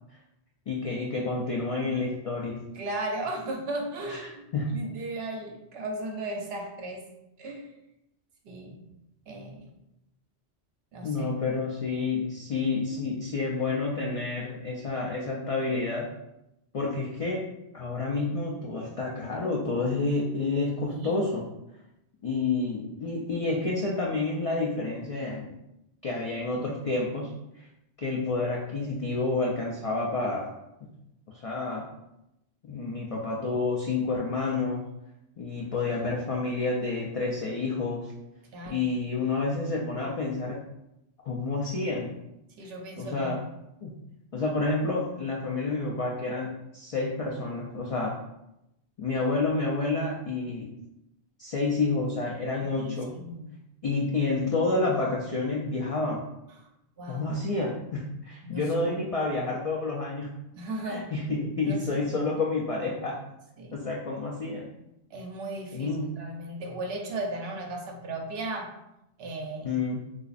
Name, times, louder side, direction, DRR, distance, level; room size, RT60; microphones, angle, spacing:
voice 1, 0.7-2.6 4.1-4.2 4.5-4.8 11.0-16.1 16.7-17.5 17.7-21.5 22.2-25.5 26.0-27.7 28.0-30.6 31.3-31.9 32.6-34.8 35.4-38.1 38.7-40.6 41.2-42.1 43.0-43.4 43.8-44.0 44.3-48.2 49.0-50.7 51.4-53.1 53.8-56.3 57.1-60.4 60.9-63.2 63.7-64.7 65.7-66.2 69.6-70.0, left 3 dB, 65° left, -2 dB, 0.3 m, -29 dB
voice 2, 2.7-7.0 7.4-7.7 8.4-8.8 9.3-9.7 10.9-11.3 20.9-21.2 38.5-38.9 42.6-43.4 52.6-53.5 56.6-56.7 57.0-57.3 58.4-58.6 60.5-61.1 61.6-62.3 63.6-63.8 65.1-65.9 66.2-68.7 69.2-69.7, right 2 dB, 70° right, 2 dB, 0.8 m, -36 dB
3.8 x 2.5 x 2.4 m, 0.87 s
omnidirectional pair, 1.1 m